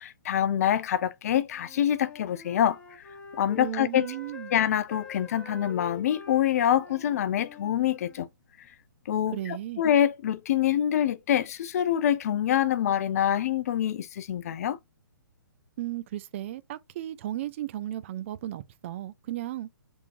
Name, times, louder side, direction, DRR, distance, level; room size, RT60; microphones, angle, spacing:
voice 1, 0.0-2.8 3.4-4.1 4.5-8.3 9.1-14.8, left 10 dB, 45° left, 0.4 m, -25 dB
Wind instrument woodwind instrument, 1.5-8.3, left 4 dB, 10° left, 1.2 m, -46 dB
voice 2, 3.6-4.5 9.3-9.8 15.8-19.7, right 13 dB, 35° right, 0.4 m, -35 dB
5.0 x 3.5 x 2.5 m
figure-of-eight pair, 130°, 12 cm